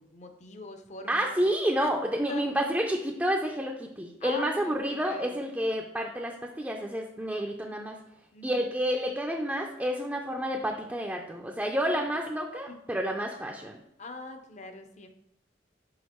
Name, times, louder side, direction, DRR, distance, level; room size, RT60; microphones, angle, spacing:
voice 1, 0.0-1.4 1.8-1.9 2.3-2.7 4.2-5.4 8.3-8.6 12.7-13.0 14.0-15.1, left 2 dB, 40° left, 6 dB, 0.6 m, -42 dB
voice 2, 1.1-8.0 8.4-13.8, equal, 10° right, 0 dB, 0.4 m, -29 dB
6.4 x 4.9 x 3.0 m, 0.84 s
head